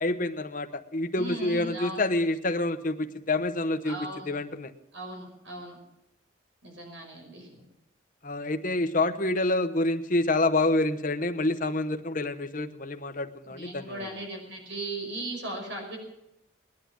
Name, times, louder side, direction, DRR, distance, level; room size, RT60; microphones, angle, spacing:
voice 1, 0.0-4.0 4.3-4.7 8.2-14.1, left 2 dB, 40° left, 7 dB, 1.1 m, -27 dB
voice 2, 1.1-2.0 3.8-4.3 4.9-5.8 6.6-7.5 13.5-16.0, right 2 dB, 70° right, 2 dB, 5.4 m, -37 dB
20.0 x 10.5 x 6.2 m, 0.87 s
head